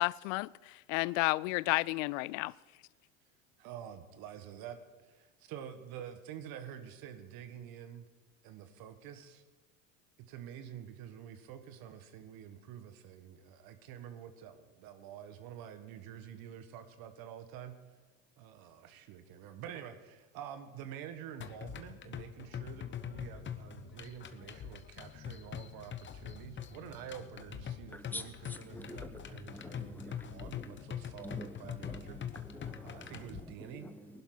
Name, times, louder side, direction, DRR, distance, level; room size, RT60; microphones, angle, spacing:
voice 1, 0.0-2.5, left 22 dB, 70° left, 0.5 m, -32 dB
voice 2, 3.6-8.1 8.4-9.4 10.3-17.8 18.4-32.2 32.8-33.9, right 9 dB, 60° right, 1.6 m, -48 dB
sound 1, 21.4-33.4, left 8 dB, 30° left, 1.0 m, -44 dB
voice 3, 27.9-34.2, left 1 dB, 5° left, 1.3 m, -48 dB
20.0 x 11.5 x 4.0 m
hypercardioid pair, 90°, 40 cm